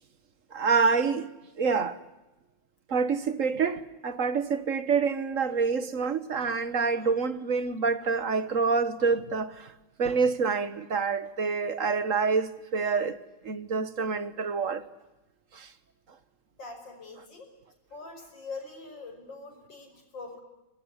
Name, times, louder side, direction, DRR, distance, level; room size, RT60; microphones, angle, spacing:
voice 1, 0.5-2.0 2.9-9.7 10.0-13.2 13.4-14.9 15.5-15.7, right 5 dB, 45° right, 1.6 m, -27 dB
voice 2, 16.6-17.5 17.9-20.4, left 3 dB, 80° left, 6.2 m, -43 dB
24.5 x 19.5 x 9.8 m
omnidirectional pair, 2.0 m